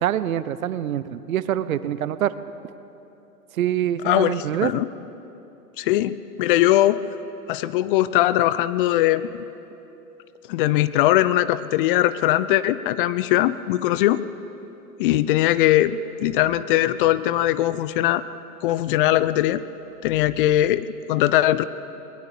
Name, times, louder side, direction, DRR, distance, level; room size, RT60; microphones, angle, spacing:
voice 1, 0.0-2.3 3.5-4.7, right 11 dB, 65° right, 15 dB, 0.9 m, -25 dB
voice 2, 5.8-7.0 7.5-9.3 10.5-14.2 15.0-18.2 18.6-19.6 20.0-21.6, left 14 dB, 35° left, 15 dB, 0.6 m, -20 dB
20.5 x 20.0 x 7.0 m, 2.9 s
figure-of-eight pair, 105°, 45 cm